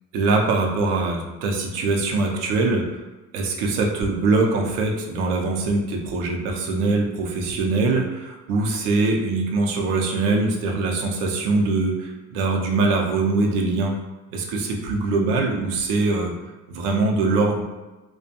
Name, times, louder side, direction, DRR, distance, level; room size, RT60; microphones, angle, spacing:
voice 1, 0.1-3.0 3.3-13.9 14.3-16.3 16.7-17.6, right 3 dB, 75° right, 0 dB, 0.6 m, -22 dB
2.4 x 2.2 x 2.6 m, 1.1 s
hypercardioid pair, 65°, 46 cm